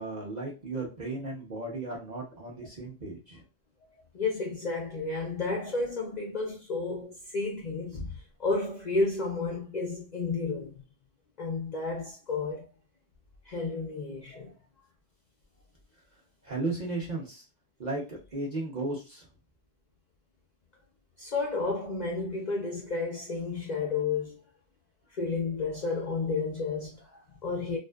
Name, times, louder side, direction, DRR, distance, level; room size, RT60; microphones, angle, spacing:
voice 1, 0.0-3.4 16.4-17.4 17.8-19.2, right 2 dB, 45° right, 0.7 m, -35 dB
voice 2, 4.1-10.8 11.4-12.7 13.4-14.5 21.2-24.4 25.1-27.8, left 3 dB, 60° left, 0.4 m, -32 dB
2.5 x 2.3 x 2.2 m
omnidirectional pair, 1.3 m